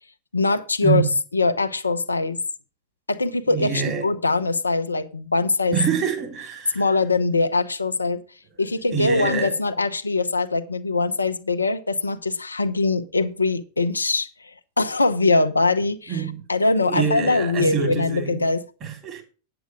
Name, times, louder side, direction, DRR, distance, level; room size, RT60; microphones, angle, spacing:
voice 1, 0.3-1.0 1.3-2.4 3.1-5.8 6.7-8.2 8.6-14.3 14.8-16.2 16.5-18.6, left 3 dB, 80° left, 0.7 m, -22 dB
voice 2, 3.5-4.1 5.7-6.8 8.9-9.5 16.1-16.4 16.8-18.4 18.8-19.2, right 7 dB, 30° right, 3.2 m, -25 dB
9.2 x 7.8 x 4.9 m
figure-of-eight pair, 90°, 0 cm